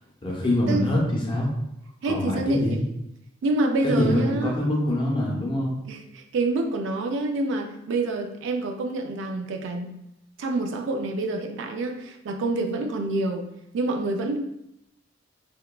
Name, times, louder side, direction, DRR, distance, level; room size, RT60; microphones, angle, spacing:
voice 1, 0.2-1.5 2.1-2.8 3.8-5.8, left 1 dB, 25° left, -3 dB, 0.6 m, -24 dB
voice 2, 2.0-2.8 3.4-4.6 5.9-9.9 10.4-13.5 13.7-14.4, right 2 dB, 65° right, 4 dB, 0.3 m, -27 dB
2.8 x 2.2 x 2.2 m, 0.81 s
head